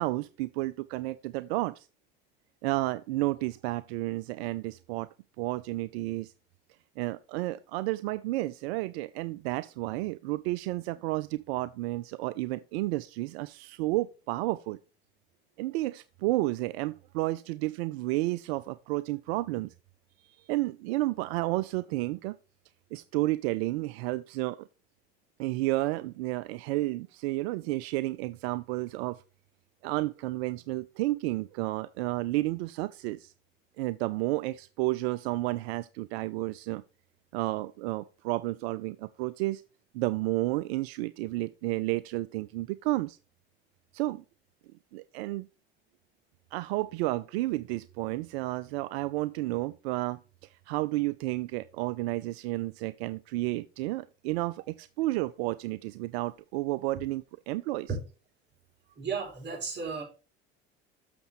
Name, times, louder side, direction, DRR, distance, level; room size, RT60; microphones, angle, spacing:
voice 1, 0.0-1.9 2.6-6.3 7.0-14.8 15.6-19.7 20.4-22.4 22.9-24.7 25.4-29.2 29.8-33.3 33.8-36.8 37.3-39.6 39.9-43.2 43.9-44.2 44.9-45.5 46.5-57.9, right 18 dB, 80° right, 0.5 m, -31 dB
voice 2, 59.0-60.0, right 5 dB, 35° right, 4.8 m, -33 dB
7.0 x 6.6 x 4.1 m
hypercardioid pair, 75°, 31 cm